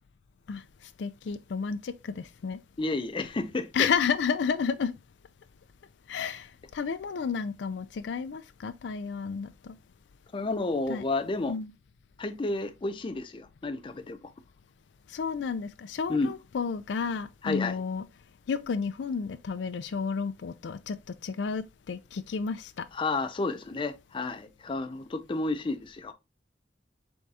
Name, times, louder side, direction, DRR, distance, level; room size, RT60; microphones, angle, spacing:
voice 1, 1.0-2.6 3.7-5.0 6.1-9.8 10.9-11.0 11.5-11.7 15.1-18.0 18.5-22.8, left 6 dB, 85° left, 0.4 m, -31 dB
voice 2, 2.8-3.9 10.3-11.6 12.2-14.2 16.1-16.3 17.4-17.8 22.9-26.1, left 3 dB, 30° left, 0.5 m, -31 dB
4.6 x 3.5 x 2.7 m
head